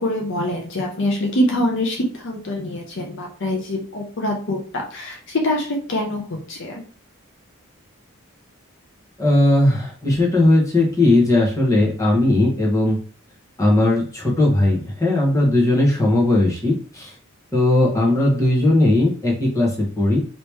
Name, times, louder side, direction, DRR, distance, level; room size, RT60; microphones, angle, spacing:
voice 1, 0.0-4.6 4.9-5.2 5.4-6.2 6.5-6.8, left 1 dB, 55° left, 0 dB, 0.7 m, -24 dB
voice 2, 9.2-13.0 13.6-17.1 17.5-20.2, left 1 dB, 15° left, -4 dB, 1.1 m, -18 dB
3.0 x 2.9 x 3.4 m, 0.42 s
head